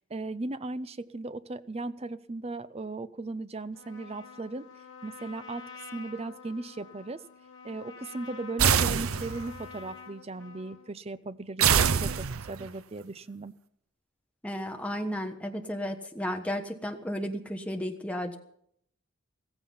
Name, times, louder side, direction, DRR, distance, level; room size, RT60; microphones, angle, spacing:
voice 1, 0.1-4.7 5.0-7.2 7.6-13.5, right 2 dB, 30° right, 14 dB, 0.5 m, -37 dB
Trumpet, 3.7-10.9, left 6 dB, 75° left, 2.3 m, -48 dB
sound 1, 8.6-9.6 11.6-12.7, right 7 dB, 80° right, 0.7 m, -24 dB
voice 2, 14.4-18.4, equal, 5° left, 4 dB, 1.2 m, -33 dB
15.5 x 15.0 x 5.5 m, 0.71 s
head